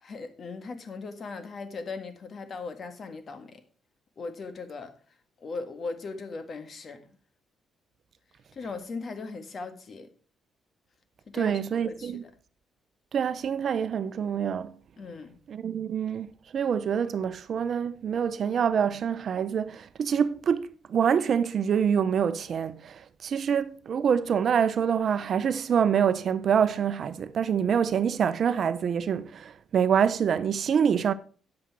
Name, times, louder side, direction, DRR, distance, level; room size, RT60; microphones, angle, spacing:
voice 1, 0.0-3.6 4.2-4.9 5.4-7.1 8.5-10.1 11.3-12.3 15.0-15.4, left 4 dB, 45° left, 1.6 m, -38 dB
voice 2, 11.3-12.2 13.1-14.7 15.5-31.1, right 7 dB, 55° right, 0.7 m, -26 dB
9.6 x 7.8 x 4.7 m
cardioid pair, 90°, 0 cm